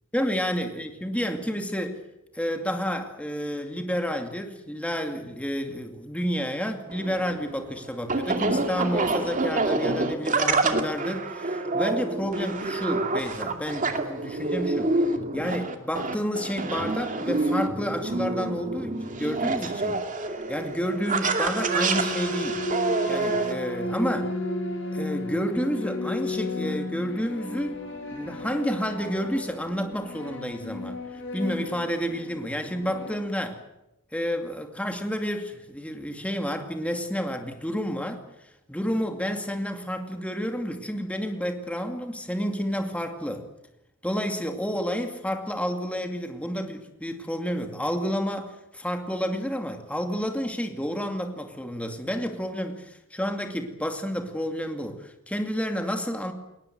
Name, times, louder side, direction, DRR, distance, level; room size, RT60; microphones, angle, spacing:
voice 1, 0.1-2.0 2.3-15.0 15.3-20.1 20.5-22.7 23.1-24.4 24.9-27.8 28.1-33.5 34.1-38.2 38.7-43.5 44.0-56.3, equal, 5° left, 5 dB, 2.4 m, -30 dB
sound 1, 6.9-23.5, right 3 dB, 40° right, 2.4 m, -27 dB
sound 2, 21.6-33.1, left 1 dB, 65° left, 6.2 m, -33 dB
21.0 x 19.5 x 9.3 m, 0.90 s
head